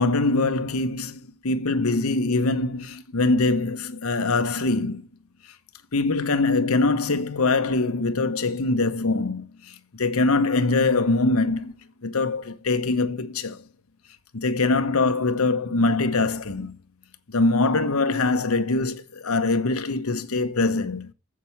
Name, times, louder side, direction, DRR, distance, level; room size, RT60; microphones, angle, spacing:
voice 1, 0.0-5.0 5.9-11.7 12.0-13.6 14.3-16.8 17.3-21.1, left 3 dB, 90° left, 1.0 m, -23 dB
7.6 x 6.2 x 7.0 m
head